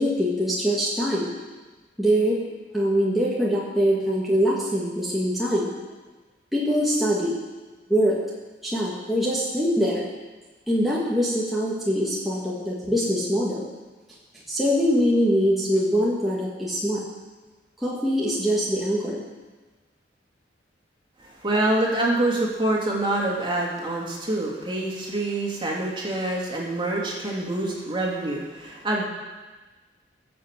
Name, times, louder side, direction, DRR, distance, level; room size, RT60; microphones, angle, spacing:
voice 1, 0.0-1.3 2.0-2.4 2.7-5.7 6.5-7.4 7.9-8.2 8.6-10.1 10.7-13.6 14.5-17.0 17.8-19.2, equal, ahead, -6 dB, 1.9 m, -23 dB
voice 2, 21.2-29.0, right 1 dB, 25° right, -2 dB, 2.8 m, -26 dB
18.0 x 7.7 x 7.5 m, 1.3 s
head